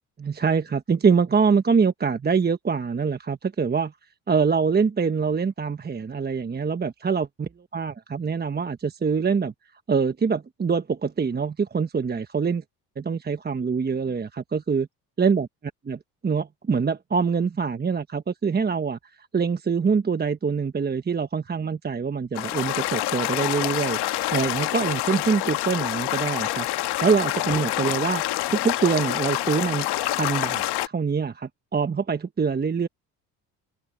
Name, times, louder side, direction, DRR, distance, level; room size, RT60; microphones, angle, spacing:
voice 1, 0.2-3.9 4.3-9.5 9.9-12.6 13.0-14.9 15.2-15.5 15.8-28.2 28.5-29.9 30.1-32.9, right 5 dB, 25° right, 1.0 m, -24 dB
sound 1, 22.3-30.9, left 16 dB, 70° left, 1.4 m, -27 dB
supercardioid pair, 80°, 40 cm